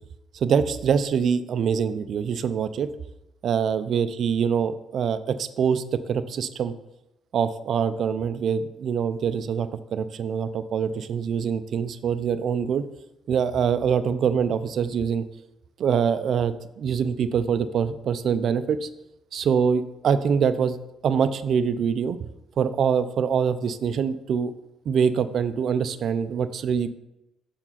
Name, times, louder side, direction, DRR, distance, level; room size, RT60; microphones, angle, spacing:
voice 1, 0.3-2.9 3.4-6.7 7.3-12.8 13.3-15.2 15.8-18.9 19.3-20.8 21.0-22.3 22.6-24.5 24.9-26.9, right 7 dB, 65° right, 11 dB, 0.4 m, -24 dB
6.7 x 4.9 x 5.6 m, 0.90 s
cardioid pair, 90°, 0 cm